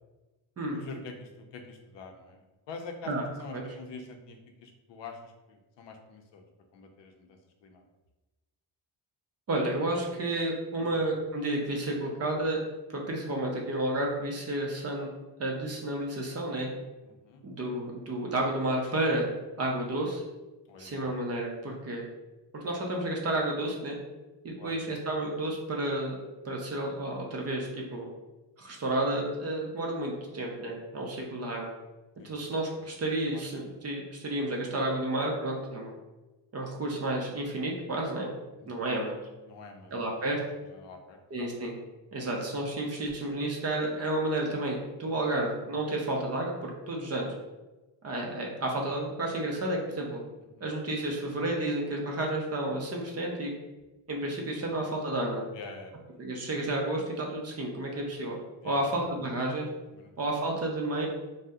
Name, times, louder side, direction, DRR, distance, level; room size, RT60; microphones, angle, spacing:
voice 1, 0.7-3.1 3.4-6.5 6.7-7.8 10.8-11.0 17.0-17.4 20.7-21.1 24.6-24.7 32.2-32.3 33.3-33.4 38.6-38.7 39.5-40.1 40.7-41.5 50.6-50.7 54.6-54.8 55.5-55.9 58.6-59.1 59.9-60.1, left 4 dB, 70° left, 4 dB, 0.5 m, -46 dB
voice 2, 9.5-12.6 12.9-15.1 15.4-16.7 17.4-19.3 19.6-20.2 20.8-22.0 22.5-24.0 24.4-26.2 26.4-28.1 28.6-31.7 32.2-35.9 36.5-38.3 38.7-39.2 39.9-40.4 41.3-41.7 42.1-47.3 48.0-50.2 50.6-53.5 54.1-55.5 56.2-58.4 58.6-59.7 60.2-61.1, right 1 dB, 35° right, -1 dB, 0.4 m, -31 dB
2.6 x 2.0 x 3.4 m, 1.1 s
wide cardioid pair, 165°, 45 cm